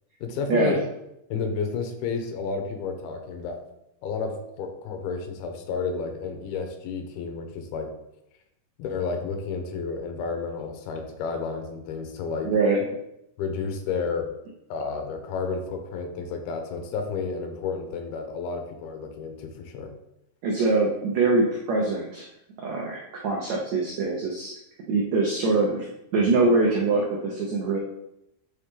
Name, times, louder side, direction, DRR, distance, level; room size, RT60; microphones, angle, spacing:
voice 1, 0.2-0.8 1.3-3.6 4.0-7.9 8.8-12.5 13.4-14.3 14.7-19.9, left 5 dB, 80° left, 5 dB, 2.7 m, -31 dB
voice 2, 12.4-12.8 20.4-22.3 22.6-24.5 24.9-25.9 26.1-27.8, right 3 dB, 90° right, -2 dB, 1.5 m, -23 dB
8.9 x 4.0 x 3.7 m, 0.84 s
omnidirectional pair, 4.5 m